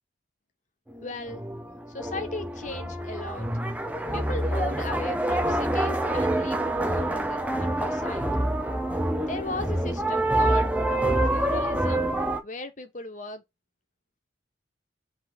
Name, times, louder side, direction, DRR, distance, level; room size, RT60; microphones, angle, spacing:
voice 1, 1.0-1.4 1.9-3.5 4.1-8.3 9.3-10.8 11.2-12.1 12.4-13.4, left 2 dB, 40° left, 1.2 m, -37 dB
sound 1, 1.0-12.4, right 1 dB, 10° right, 0.8 m, -26 dB
6.1 x 4.1 x 4.4 m
head